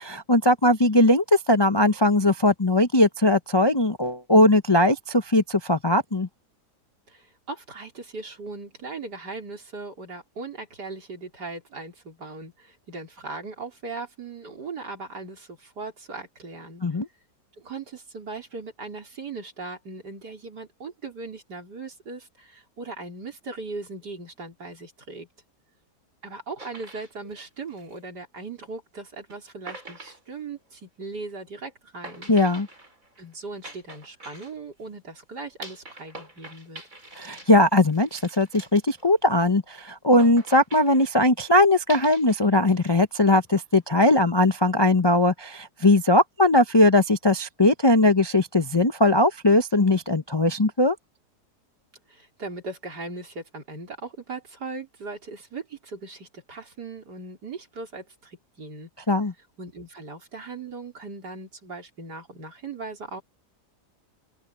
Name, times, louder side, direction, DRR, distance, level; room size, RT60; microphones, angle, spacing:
voice 1, 0.0-6.3 16.8-17.1 32.3-32.7 37.2-51.0 59.1-59.3, left 1 dB, 30° left, 0.4 m, -20 dB
voice 2, 7.1-16.8 17.6-25.3 26.2-32.3 33.2-36.8 52.1-58.9 59.6-63.2, right 3 dB, 90° right, 4.6 m, -38 dB
sound 1, 26.6-28.4 29.3-29.4 29.7-31.0 32.0-34.9 35.6-39.6 40.2-41.1 41.9-42.9 43.2-43.8, right 1 dB, 55° right, 7.7 m, -45 dB
open air
omnidirectional pair, 1.7 m